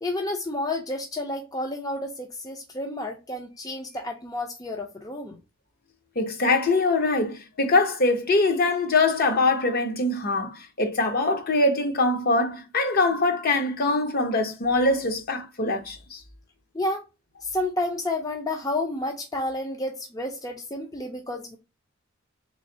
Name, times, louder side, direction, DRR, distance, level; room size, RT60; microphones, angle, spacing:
voice 1, 0.0-5.4 16.7-17.1 17.4-21.6, left 1 dB, 20° left, 0.5 m, -30 dB
voice 2, 6.2-16.2, left 2 dB, 50° left, 0.7 m, -23 dB
3.6 x 3.1 x 2.6 m
head